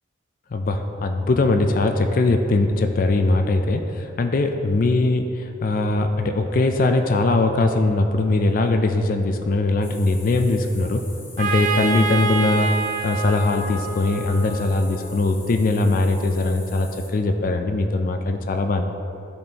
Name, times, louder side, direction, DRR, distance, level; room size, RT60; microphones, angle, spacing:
voice 1, 0.5-11.0 11.4-12.7 13.0-18.9, left 2 dB, 45° left, 6 dB, 0.4 m, -21 dB
sound 1, 9.8-17.1, left 2 dB, 15° left, 0.8 m, -44 dB
Trumpet, 11.4-15.1, right 4 dB, 45° right, 0.6 m, -27 dB
12.0 x 4.2 x 2.9 m, 2.8 s
head